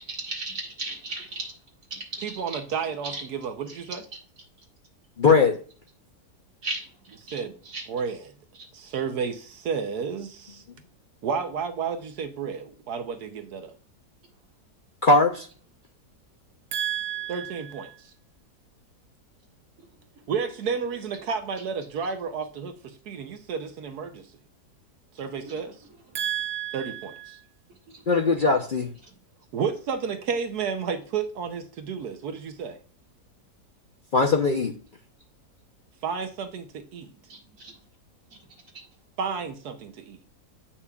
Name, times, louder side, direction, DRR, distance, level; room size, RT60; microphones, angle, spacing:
voice 1, 0.0-1.5 1.9-2.6 3.0-3.2 3.7-3.8 6.6-6.9 7.7-7.9 25.5-25.6 37.3-37.7, right 2 dB, 55° right, 2.1 m, -35 dB
voice 2, 2.2-4.0 7.2-7.6 7.9-8.3 8.7-10.6 11.2-13.7 16.7-18.1 20.3-24.3 25.1-25.8 26.1-27.4 29.5-32.8 36.0-37.1 39.2-40.2, right 6 dB, 75° right, 1.3 m, -31 dB
voice 3, 5.2-5.5 15.0-15.5 28.1-28.9 34.1-34.7, left 3 dB, 50° left, 0.6 m, -20 dB
8.2 x 5.7 x 2.3 m
omnidirectional pair, 1.7 m